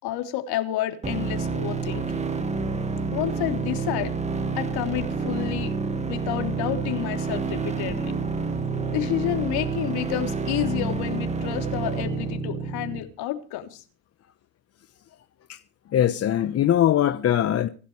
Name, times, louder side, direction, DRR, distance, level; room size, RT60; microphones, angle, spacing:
voice 1, 0.0-2.3 3.1-4.1 4.6-5.7 6.1-8.1 8.9-13.8, left 13 dB, 50° left, 3.3 m, -30 dB
sound 1, 1.0-13.0, right 4 dB, 15° right, 1.9 m, -28 dB
voice 2, 15.9-17.7, left 11 dB, 30° left, 1.1 m, -21 dB
25.5 x 11.5 x 3.3 m
hypercardioid pair, 100°, 47 cm